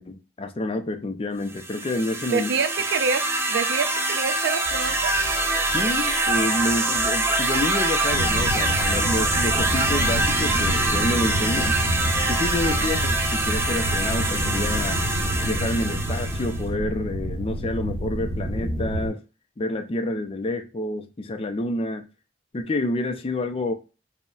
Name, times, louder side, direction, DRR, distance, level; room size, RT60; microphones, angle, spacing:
voice 1, 0.0-2.5 5.7-11.7 12.3-15.0 15.4-19.2 19.6-22.1 22.5-23.7, left 1 dB, 30° left, 0.4 m, -28 dB
sound 1, 1.5-16.6, right 2 dB, 15° right, 0.6 m, -25 dB
voice 2, 2.3-3.2 3.5-5.1, right 5 dB, 65° right, 0.4 m, -26 dB
sound 2, 4.6-15.4, equal, 85° left, 0.6 m, -38 dB
sound 3, 8.1-19.1, equal, 40° right, 2.0 m, -28 dB
5.2 x 2.1 x 2.3 m
head